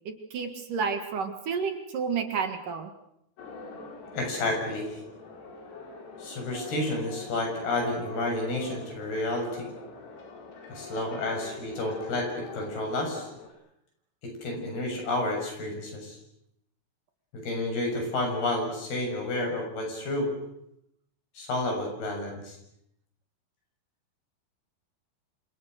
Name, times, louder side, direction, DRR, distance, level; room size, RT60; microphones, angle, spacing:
voice 1, 0.1-2.9, right 5 dB, 60° right, 6 dB, 3.0 m, -31 dB
sound 1, 3.4-13.5, left 3 dB, 85° left, 6.4 m, -44 dB
voice 2, 4.1-5.0 6.2-9.7 10.7-13.3 14.2-16.2 17.3-20.3 21.4-22.6, left 2 dB, 65° left, 3 dB, 8.8 m, -30 dB
28.0 x 26.5 x 6.6 m, 0.77 s
omnidirectional pair, 4.8 m